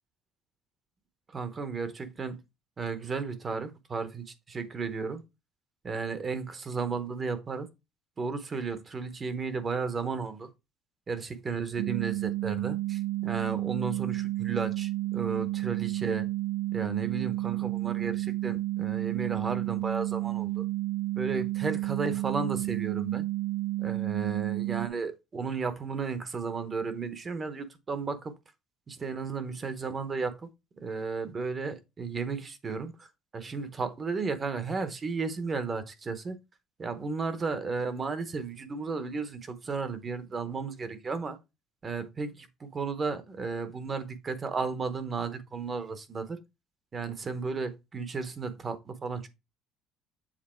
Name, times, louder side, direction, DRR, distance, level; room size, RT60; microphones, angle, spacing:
voice 1, 1.3-2.4 2.8-5.2 5.8-7.7 8.2-10.5 11.1-16.3 16.7-20.7 21.2-23.2 23.8-28.3 28.9-30.5 30.8-33.1 33.3-36.4 36.8-41.4 41.8-46.4 46.9-49.3, right 4 dB, 20° right, 0.9 m, -34 dB
sound 1, 11.8-24.9, right 17 dB, 75° right, 0.7 m, -31 dB
7.5 x 4.0 x 4.4 m
cardioid pair, 175°, 0 cm